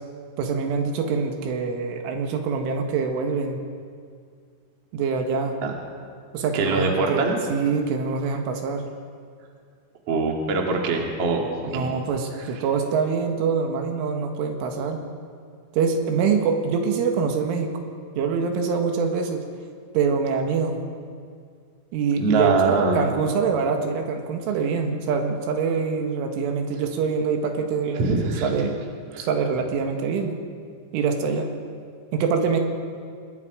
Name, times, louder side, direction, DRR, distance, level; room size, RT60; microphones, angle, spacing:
voice 1, 0.4-3.6 4.9-5.6 6.3-8.8 11.7-15.0 15.7-17.7 18.2-19.4 19.9-20.8 21.9-28.8 29.2-30.4 30.9-31.5 32.1-32.6, right 5 dB, 80° right, 4 dB, 4.0 m, -25 dB
voice 2, 6.5-7.4 10.1-11.9 22.2-23.0 28.0-28.5 29.1-29.3, right 3 dB, 40° right, 0 dB, 2.6 m, -23 dB
25.5 x 21.5 x 5.1 m, 2.1 s
omnidirectional pair, 5.7 m